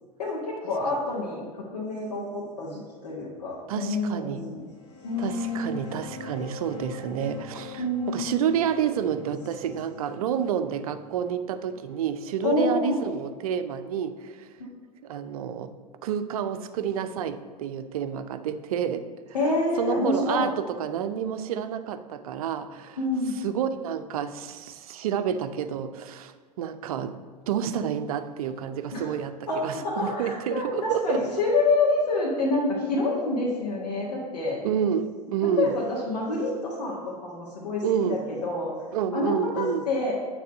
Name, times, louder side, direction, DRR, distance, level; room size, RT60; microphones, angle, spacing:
voice 1, 0.2-4.6 5.0-5.8 7.8-8.4 12.4-13.0 19.3-20.5 23.0-23.3 28.9-29.1 29.5-34.6 35.6-38.7 39.1-40.1, left 2 dB, 75° left, -5 dB, 1.5 m, -27 dB
voice 2, 3.7-4.4 5.2-14.5 15.0-15.7 16.0-19.1 19.8-23.0 23.4-31.2 34.6-35.8 37.8-38.2 38.9-39.9, right 8 dB, 60° right, 11 dB, 0.6 m, -29 dB
sound 1, 4.7-14.0, left 5 dB, 25° left, 1.1 m, -45 dB
9.2 x 3.4 x 6.4 m, 1.5 s
figure-of-eight pair, 90°, 21 cm